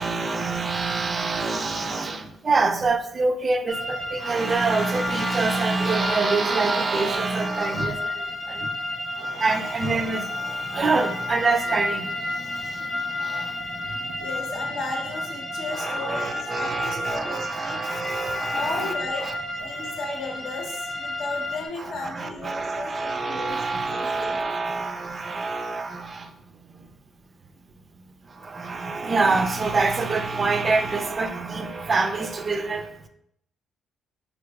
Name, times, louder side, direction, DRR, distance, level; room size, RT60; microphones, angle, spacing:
voice 1, 0.0-8.7 9.2-12.9 13.2-14.3 15.7-19.3 21.8-26.3 28.3-33.1, right 3 dB, 35° right, 0.3 m, -26 dB
sound 1, 3.7-21.7, left 2 dB, 35° left, 0.7 m, -32 dB
voice 2, 14.2-17.8 18.5-19.3 19.6-24.3, left 3 dB, 75° left, 0.7 m, -35 dB
3.9 x 2.5 x 2.2 m
cardioid pair, 90°, 0 cm